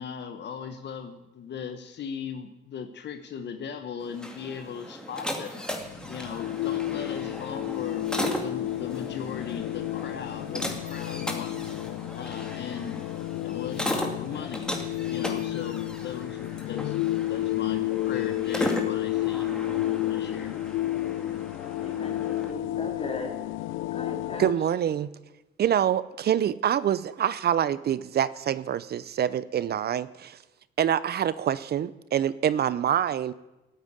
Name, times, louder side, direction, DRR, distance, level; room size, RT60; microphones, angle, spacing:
voice 1, 0.0-5.6 6.1-8.1 8.4-11.7 12.1-13.0 13.4-14.7 15.1-16.9 17.3-19.5 20.0-20.6, left 7 dB, 60° left, 8 dB, 1.1 m, -38 dB
sound 1, 4.0-22.5, equal, 5° left, 2.2 m, -37 dB
sound 2, 5.8-24.5, left 15 dB, 90° left, 0.4 m, -31 dB
voice 2, 21.8-23.4 23.9-24.5, left 3 dB, 30° left, 1 dB, 3.8 m, -37 dB
voice 3, 24.4-25.1 25.6-30.4 30.8-33.3, right 10 dB, 55° right, 17 dB, 0.6 m, -26 dB
13.0 x 8.9 x 9.6 m, 1.0 s
cardioid pair, 90°, 20 cm